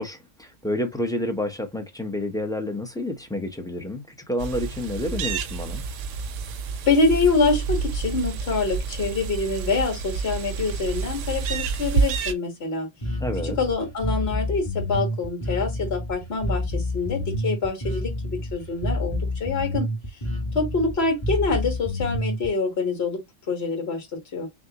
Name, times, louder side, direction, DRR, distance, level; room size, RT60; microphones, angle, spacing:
voice 1, 0.0-5.8 13.2-13.6, left 1 dB, 5° left, 0.6 m, -29 dB
sound 1, 4.4-12.3, right 5 dB, 75° right, 0.9 m, -29 dB
voice 2, 6.9-12.9 13.4-19.9 20.5-24.5, left 4 dB, 50° left, 1.7 m, -25 dB
Bass guitar, 13.0-22.5, left 1 dB, 25° left, 1.3 m, -28 dB
6.1 x 2.2 x 2.9 m
omnidirectional pair, 1.3 m